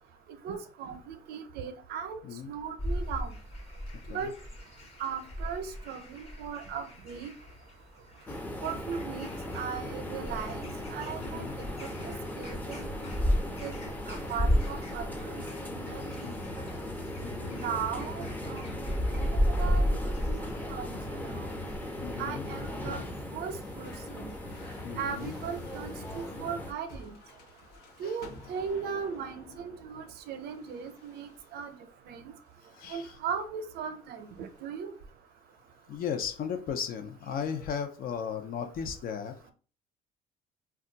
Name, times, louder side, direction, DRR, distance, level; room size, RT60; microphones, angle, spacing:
voice 1, 0.4-3.3 4.1-4.3 5.0-7.3 8.6-9.3 9.5-10.6 10.9-12.8 13.6-13.7 14.1-16.3 17.5-21.5 22.2-23.0 23.3-24.3 25.0-27.2 28.0-31.7 32.1-32.3 32.9-34.9, right 7 dB, 75° right, 8 dB, 0.6 m, -38 dB
sound 1, 2.8-22.3, equal, 35° left, 1.0 m, -34 dB
sound 2, 8.3-26.7, left 1 dB, 10° left, 0.5 m, -38 dB
voice 2, 11.2-11.5 16.2-16.4 17.2-17.6 22.0-22.5 24.8-25.3 28.0-28.1 32.8-33.1 35.9-39.4, left 7 dB, 60° left, 7 dB, 0.6 m, -36 dB
sound 3, 22.4-31.8 32.5-33.0 34.1-34.8, left 3 dB, 80° left, 1.0 m, -51 dB
2.3 x 2.2 x 3.9 m, 0.39 s
cardioid pair, 110°, 17 cm